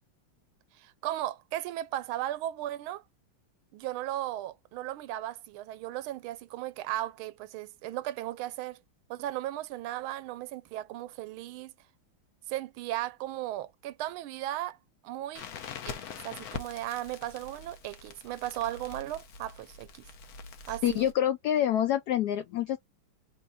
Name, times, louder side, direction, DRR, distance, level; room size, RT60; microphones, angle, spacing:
voice 1, 0.8-3.0 3.7-8.8 9.1-11.7 12.5-14.8 15.0-15.5 15.9-20.1 20.7-21.0, right 14 dB, 85° right, 1.4 m, -36 dB
Crackle, 15.4-21.1, left 6 dB, 60° left, 1.1 m, -44 dB
voice 2, 20.8-22.8, left 11 dB, 85° left, 0.8 m, -26 dB
3.7 x 2.7 x 4.0 m
omnidirectional pair, 2.2 m